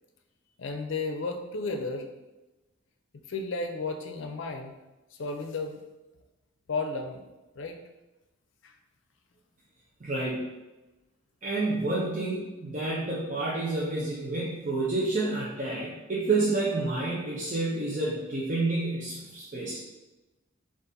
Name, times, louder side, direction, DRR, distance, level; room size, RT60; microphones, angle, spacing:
voice 1, 0.6-2.1 3.3-4.8 5.1-5.8 6.7-7.2 7.6-7.8 8.6-8.8, left 3 dB, 65° left, 5 dB, 0.5 m, -33 dB
voice 2, 10.0-10.4 11.4-19.9, right 2 dB, 35° right, -7 dB, 0.6 m, -29 dB
3.8 x 2.5 x 3.9 m, 1.1 s
head